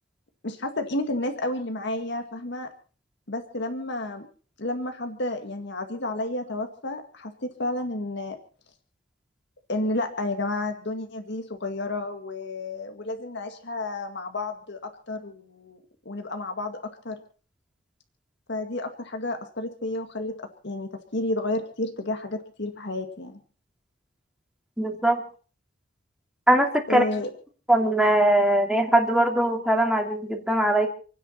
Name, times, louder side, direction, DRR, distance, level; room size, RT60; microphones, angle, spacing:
voice 1, 0.4-2.7 3.3-4.3 4.6-8.4 9.7-15.8 16.1-16.8 17.0-17.2 18.5-23.4 26.9-27.3, left 2 dB, 65° left, 5 dB, 2.0 m, -31 dB
voice 2, 24.8-25.2 26.5-27.0 27.7-30.9, right 1 dB, 5° right, 3 dB, 2.9 m, -21 dB
29.0 x 10.0 x 4.3 m, 0.40 s
head